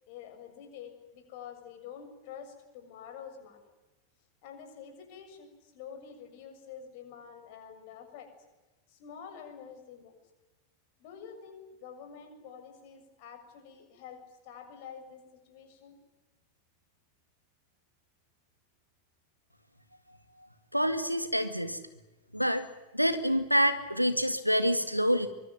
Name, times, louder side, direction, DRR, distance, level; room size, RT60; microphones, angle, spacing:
voice 1, 0.1-3.6 4.4-8.3 8.9-10.1 11.0-16.0, left 7 dB, 45° left, 6 dB, 7.0 m, -48 dB
voice 2, 20.7-21.8 22.3-22.6 22.9-25.3, equal, 90° right, 10 dB, 2.2 m, -27 dB
24.5 x 23.0 x 9.4 m, 1.1 s
figure-of-eight pair, 90°, 0 cm